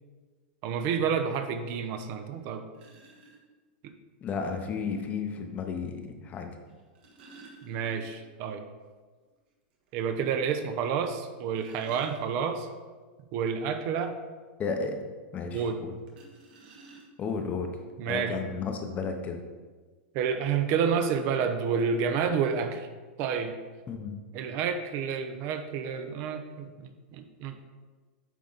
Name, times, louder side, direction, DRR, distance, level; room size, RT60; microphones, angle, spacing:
voice 1, 0.6-2.7 7.6-8.6 9.9-12.7 13.3-14.2 15.5-15.8 18.0-18.3 20.1-22.9 23.2-23.6 24.3-27.7, right 6 dB, 45° right, 8 dB, 0.6 m, -29 dB
sound 1, 2.7-3.4 4.8-4.9 6.7-8.4 8.7-8.8 9.3-9.4 9.9-10.0 11.2-12.7 16.1-17.4 18.3-18.4 18.7-19.0, right 3 dB, 65° right, 1.4 m, -52 dB
voice 2, 4.2-6.5 14.6-15.0 15.3-16.0 17.2-17.7 18.1-19.4 23.9-24.1, left 5 dB, 25° left, 5 dB, 0.7 m, -33 dB
9.3 x 3.6 x 3.9 m, 1.4 s
hypercardioid pair, 130°, 6 cm